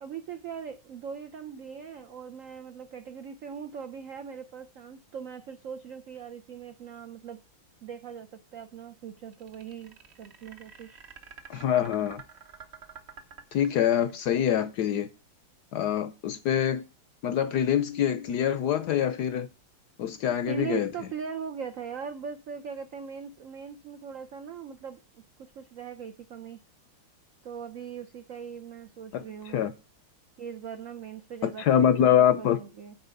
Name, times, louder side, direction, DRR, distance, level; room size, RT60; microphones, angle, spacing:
voice 1, 0.0-7.4 7.8-11.0 20.3-25.0 25.4-26.6 27.4-29.6 30.4-32.1 32.4-32.9, right 7 dB, 90° right, 0.7 m, -40 dB
sound 1, 9.3-14.4, right 6 dB, 45° right, 0.9 m, -48 dB
voice 2, 11.5-12.2 13.5-15.1 15.7-16.8 17.2-19.5 20.0-20.9 29.1-29.2 29.5-29.7 31.4-32.6, left 9 dB, 70° left, 1.0 m, -25 dB
9.2 x 4.3 x 6.9 m
omnidirectional pair, 2.2 m